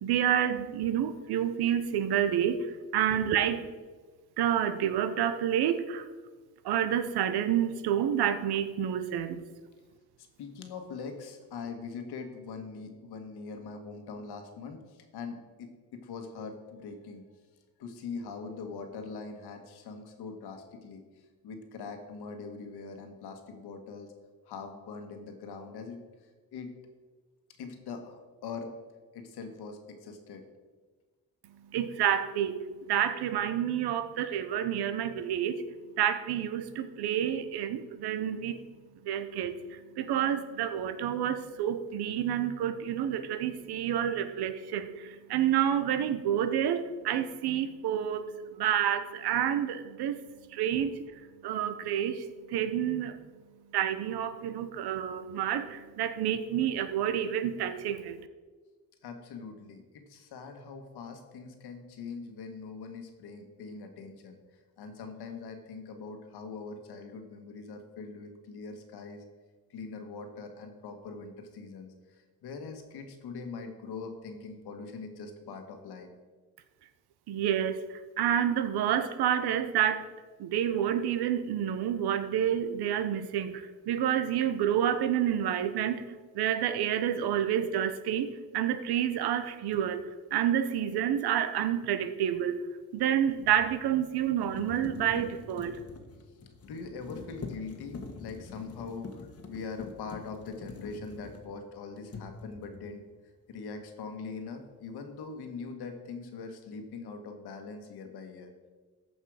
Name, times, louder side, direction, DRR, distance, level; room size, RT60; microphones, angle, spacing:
voice 1, 0.0-2.7 2.9-3.7 4.4-6.0 6.6-9.4 31.7-32.6 32.9-35.6 36.0-38.6 39.0-48.3 48.6-50.2 50.5-51.0 51.4-52.3 52.5-53.2 53.7-58.2 77.3-77.8 78.2-80.0 80.4-86.0 86.3-90.0 90.3-92.6 92.9-95.8, right 10 dB, 90° right, 11 dB, 0.9 m, -29 dB
voice 2, 10.4-17.2 17.8-24.1 24.4-26.0 26.5-26.9 27.6-28.7 29.1-30.4 59.0-64.4 64.8-69.2 69.7-76.1 96.7-103.0 103.5-108.5, left 4 dB, 90° left, 5 dB, 1.6 m, -42 dB
sound 1, 89.7-89.9 92.9-101.7 102.1-102.9, left 4 dB, 40° left, 1.3 m, -45 dB
14.0 x 5.5 x 4.9 m, 1.4 s
cardioid pair, 115°, 38 cm